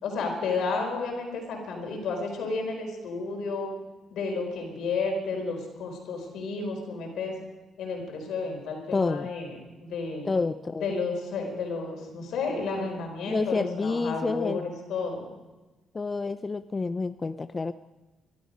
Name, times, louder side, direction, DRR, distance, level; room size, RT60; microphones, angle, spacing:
voice 1, 0.0-3.7 4.1-7.3 7.8-10.3 10.7-15.3, left 4 dB, 80° left, 2 dB, 4.5 m, -32 dB
voice 2, 8.9-9.3 10.3-10.8 13.3-14.6 15.9-17.7, left 4 dB, 30° left, 12 dB, 0.5 m, -28 dB
22.5 x 12.5 x 5.2 m, 1.1 s
cardioid pair, 90°, 0 cm